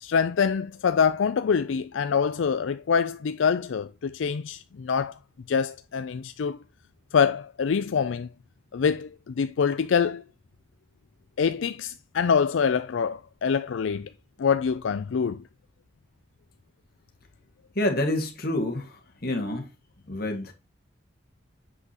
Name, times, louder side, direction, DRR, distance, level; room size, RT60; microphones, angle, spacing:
voice 1, 0.0-5.1 5.5-6.6 7.1-8.3 8.7-10.2 11.4-14.1 14.4-15.4, left 6 dB, 75° left, 0.4 m, -25 dB
voice 2, 17.8-19.7 20.1-20.5, left 1 dB, 50° left, 1.9 m, -28 dB
7.7 x 6.0 x 2.9 m
head